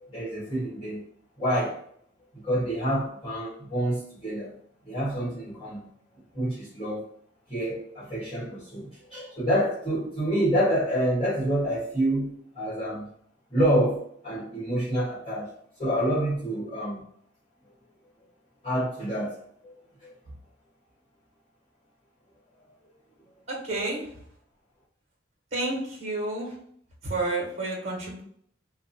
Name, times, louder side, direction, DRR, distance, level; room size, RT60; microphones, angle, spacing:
voice 1, 0.1-1.0 1.4-1.8 2.4-4.5 4.8-5.9 6.3-7.0 7.5-13.1 13.5-15.5 15.8-17.0 18.6-19.7, equal, 30° left, -9 dB, 1.2 m, -27 dB
voice 2, 23.5-24.1 25.5-26.6 27.0-28.2, right 2 dB, 35° right, -2 dB, 1.3 m, -30 dB
2.7 x 2.2 x 4.0 m, 0.64 s
head